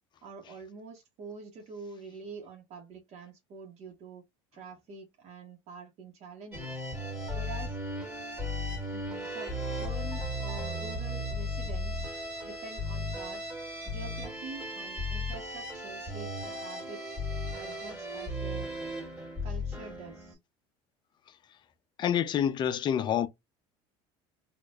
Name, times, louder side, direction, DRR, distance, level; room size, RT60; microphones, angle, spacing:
voice 1, 0.2-4.2 4.5-6.8 7.3-7.8 8.9-12.1 12.4-13.5 13.8-17.3 17.5-18.7 19.4-20.4, right 4 dB, 50° right, 1.1 m, -46 dB
sound 1, 6.5-20.3, left 1 dB, 10° right, 2.0 m, -36 dB
voice 2, 22.0-23.3, left 9 dB, 35° left, 0.5 m, -27 dB
4.1 x 2.5 x 2.4 m
supercardioid pair, 130°, 14 cm